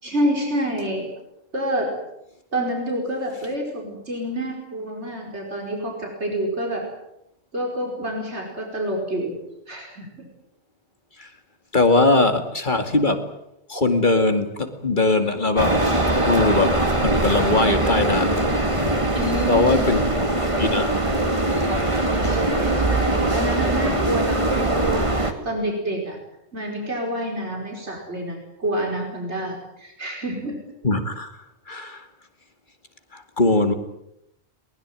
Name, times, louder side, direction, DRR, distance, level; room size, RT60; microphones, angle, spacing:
voice 1, 0.0-1.1 1.5-2.0 2.5-6.9 7.5-9.4 9.7-10.3 19.1-20.0 22.3-26.2 26.5-30.7, right 1 dB, 85° right, 1 dB, 5.3 m, -28 dB
voice 2, 11.7-13.3 13.7-18.5 19.5-20.0 20.6-21.0 30.8-31.4 31.7-32.0 33.1-33.7, left 2 dB, 45° left, 7 dB, 2.5 m, -21 dB
sound 1, 15.6-25.3, right 1 dB, 30° right, 2.4 m, -21 dB
22.0 x 20.5 x 9.1 m, 0.80 s
omnidirectional pair, 1.1 m